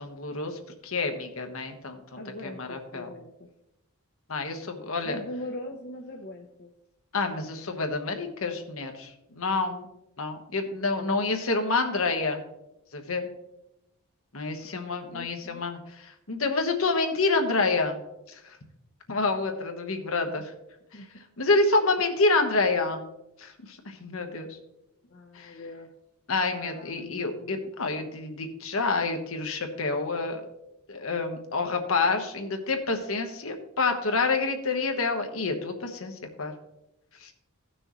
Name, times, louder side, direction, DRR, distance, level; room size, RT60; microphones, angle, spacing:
voice 1, 0.0-3.1 4.3-5.2 7.1-9.9 10.2-12.4 12.9-13.3 14.3-18.0 18.3-18.6 19.1-20.5 20.9-21.0 21.4-23.0 23.4-24.6 25.3-25.6 26.3-30.4 30.9-36.5 37.2-37.3, left 3 dB, 65° left, 5 dB, 1.2 m, -28 dB
voice 2, 2.1-3.3 5.0-6.7 15.1-15.6 20.9-21.1 25.1-25.9 26.5-27.6, left 1 dB, 45° left, 1 dB, 0.8 m, -41 dB
16.0 x 6.2 x 3.1 m, 0.86 s
head